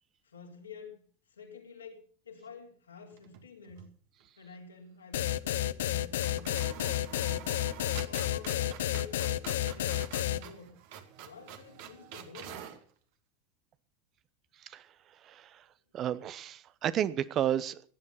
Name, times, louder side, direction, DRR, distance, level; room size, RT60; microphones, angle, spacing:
voice 1, 0.2-3.9 4.4-7.4 8.0-10.8 11.2-12.7, left 5 dB, 80° left, 1 dB, 3.9 m, -49 dB
sound 1, 3.1-3.9 4.2-4.3 5.8-5.9 6.2-12.8, right 9 dB, 55° right, 2.1 m, -47 dB
sound 2, 5.1-10.4, left 13 dB, 65° left, 0.7 m, -30 dB
voice 2, 14.6-15.7 15.9-17.8, right 10 dB, 40° right, 16 dB, 1.0 m, -33 dB
17.5 x 11.0 x 5.7 m, 0.42 s
figure-of-eight pair, 80°, 0 cm